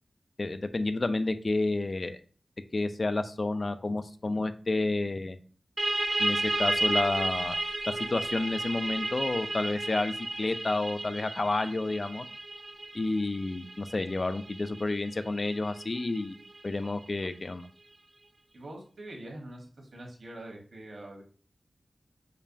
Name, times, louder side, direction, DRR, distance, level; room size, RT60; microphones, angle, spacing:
voice 1, 0.4-2.2 2.7-5.4 6.2-7.6 8.0-12.3 12.9-16.4 16.6-17.7, left 2 dB, 45° left, 10 dB, 0.3 m, -30 dB
sound 1, 5.8-17.1, right 2 dB, 40° right, 0.3 m, -33 dB
voice 2, 18.5-21.2, right 1 dB, 70° right, 0 dB, 1.1 m, -44 dB
5.0 x 2.2 x 2.5 m, 0.41 s
wide cardioid pair, 60°, 0 cm